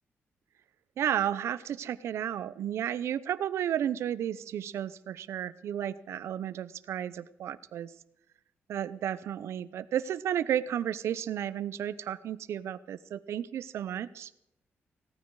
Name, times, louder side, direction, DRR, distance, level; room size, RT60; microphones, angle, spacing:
voice 1, 1.0-7.9 8.7-14.3, right 10 dB, 80° right, 15 dB, 0.7 m, -33 dB
17.5 x 13.0 x 4.8 m, 0.80 s
wide cardioid pair, 145°, 5 cm